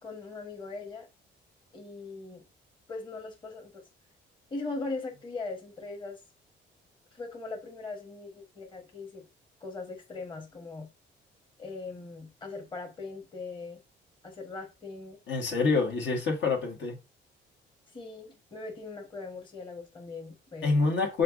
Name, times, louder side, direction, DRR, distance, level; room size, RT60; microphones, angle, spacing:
voice 1, 0.0-1.1 1.7-2.4 2.9-3.8 4.5-6.2 7.1-9.2 9.6-10.9 11.6-13.8 14.2-15.2 17.9-20.8, left 3 dB, 25° left, 1.1 m, -40 dB
voice 2, 15.3-17.0 20.6-21.2, left 4 dB, 65° left, 1.5 m, -26 dB
5.6 x 3.8 x 2.4 m
cardioid pair, 90°, 20 cm